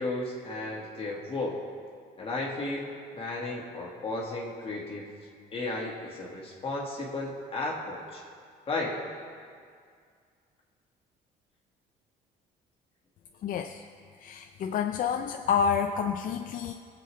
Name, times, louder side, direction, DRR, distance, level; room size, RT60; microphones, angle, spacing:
voice 1, 0.0-1.6 2.2-5.1 5.5-8.2 8.7-9.0, left 2 dB, 35° left, -3 dB, 1.7 m, -34 dB
voice 2, 13.4-13.8 14.2-16.7, left 7 dB, 55° left, 5 dB, 0.5 m, -28 dB
20.5 x 7.7 x 3.2 m, 2.1 s
cardioid pair, 110°, 17 cm